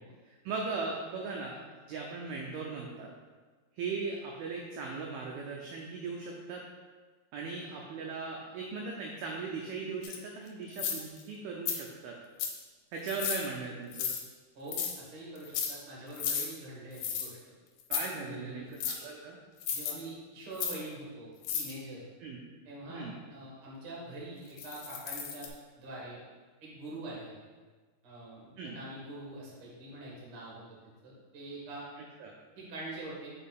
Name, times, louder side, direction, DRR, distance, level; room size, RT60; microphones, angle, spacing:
voice 1, 0.3-3.1 3.8-6.6 7.3-12.2 12.9-14.1 17.9-19.4 22.2-22.4 22.9-23.1 28.6-28.8 32.0-32.3, right 4 dB, 80° right, -1 dB, 2.3 m, -38 dB
sound 1, 10.0-10.2 10.7-11.2 11.7-11.8 12.4-12.6 13.1-13.4 13.9-14.2 14.7-14.9 15.4-15.7 16.2-16.5 17.0-17.3 17.8-18.1 18.8-19.0 19.6-19.9 20.6-20.8 21.4-21.7 24.6-25.5, left 7 dB, 85° left, 2.8 m, -33 dB
voice 2, 14.5-17.4 18.2-18.8 19.7-22.1 22.6-25.5 25.8-26.2 26.6-27.3 28.0-31.9 32.6-33.3, right 2 dB, 45° right, -5 dB, 2.0 m, -44 dB
5.7 x 5.4 x 4.1 m, 1.4 s
omnidirectional pair, 4.9 m